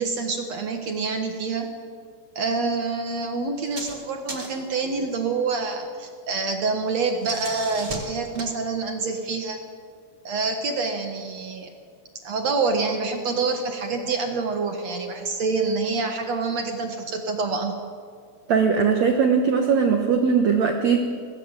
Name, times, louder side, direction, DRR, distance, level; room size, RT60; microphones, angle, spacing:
voice 1, 0.0-1.7 2.3-9.6 10.2-11.7 12.2-17.8, right 4 dB, 70° right, 4 dB, 1.6 m, -27 dB
sound 1, 3.6-4.0 4.3-4.7 6.9-8.5, right 2 dB, 30° right, 2.6 m, -36 dB
voice 2, 18.5-21.0, right 6 dB, 85° right, 4 dB, 1.5 m, -20 dB
21.5 x 16.5 x 9.0 m, 2.1 s
omnidirectional pair, 5.2 m